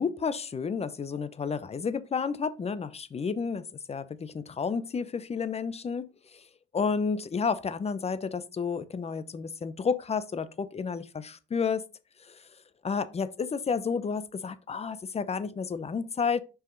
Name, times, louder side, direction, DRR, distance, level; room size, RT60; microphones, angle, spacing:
voice 1, 0.0-6.4 6.7-11.8 12.3-12.4 12.8-16.4, left 5 dB, 30° left, 0.7 m, -31 dB
6.0 x 5.0 x 3.9 m
cardioid pair, 90°, 20 cm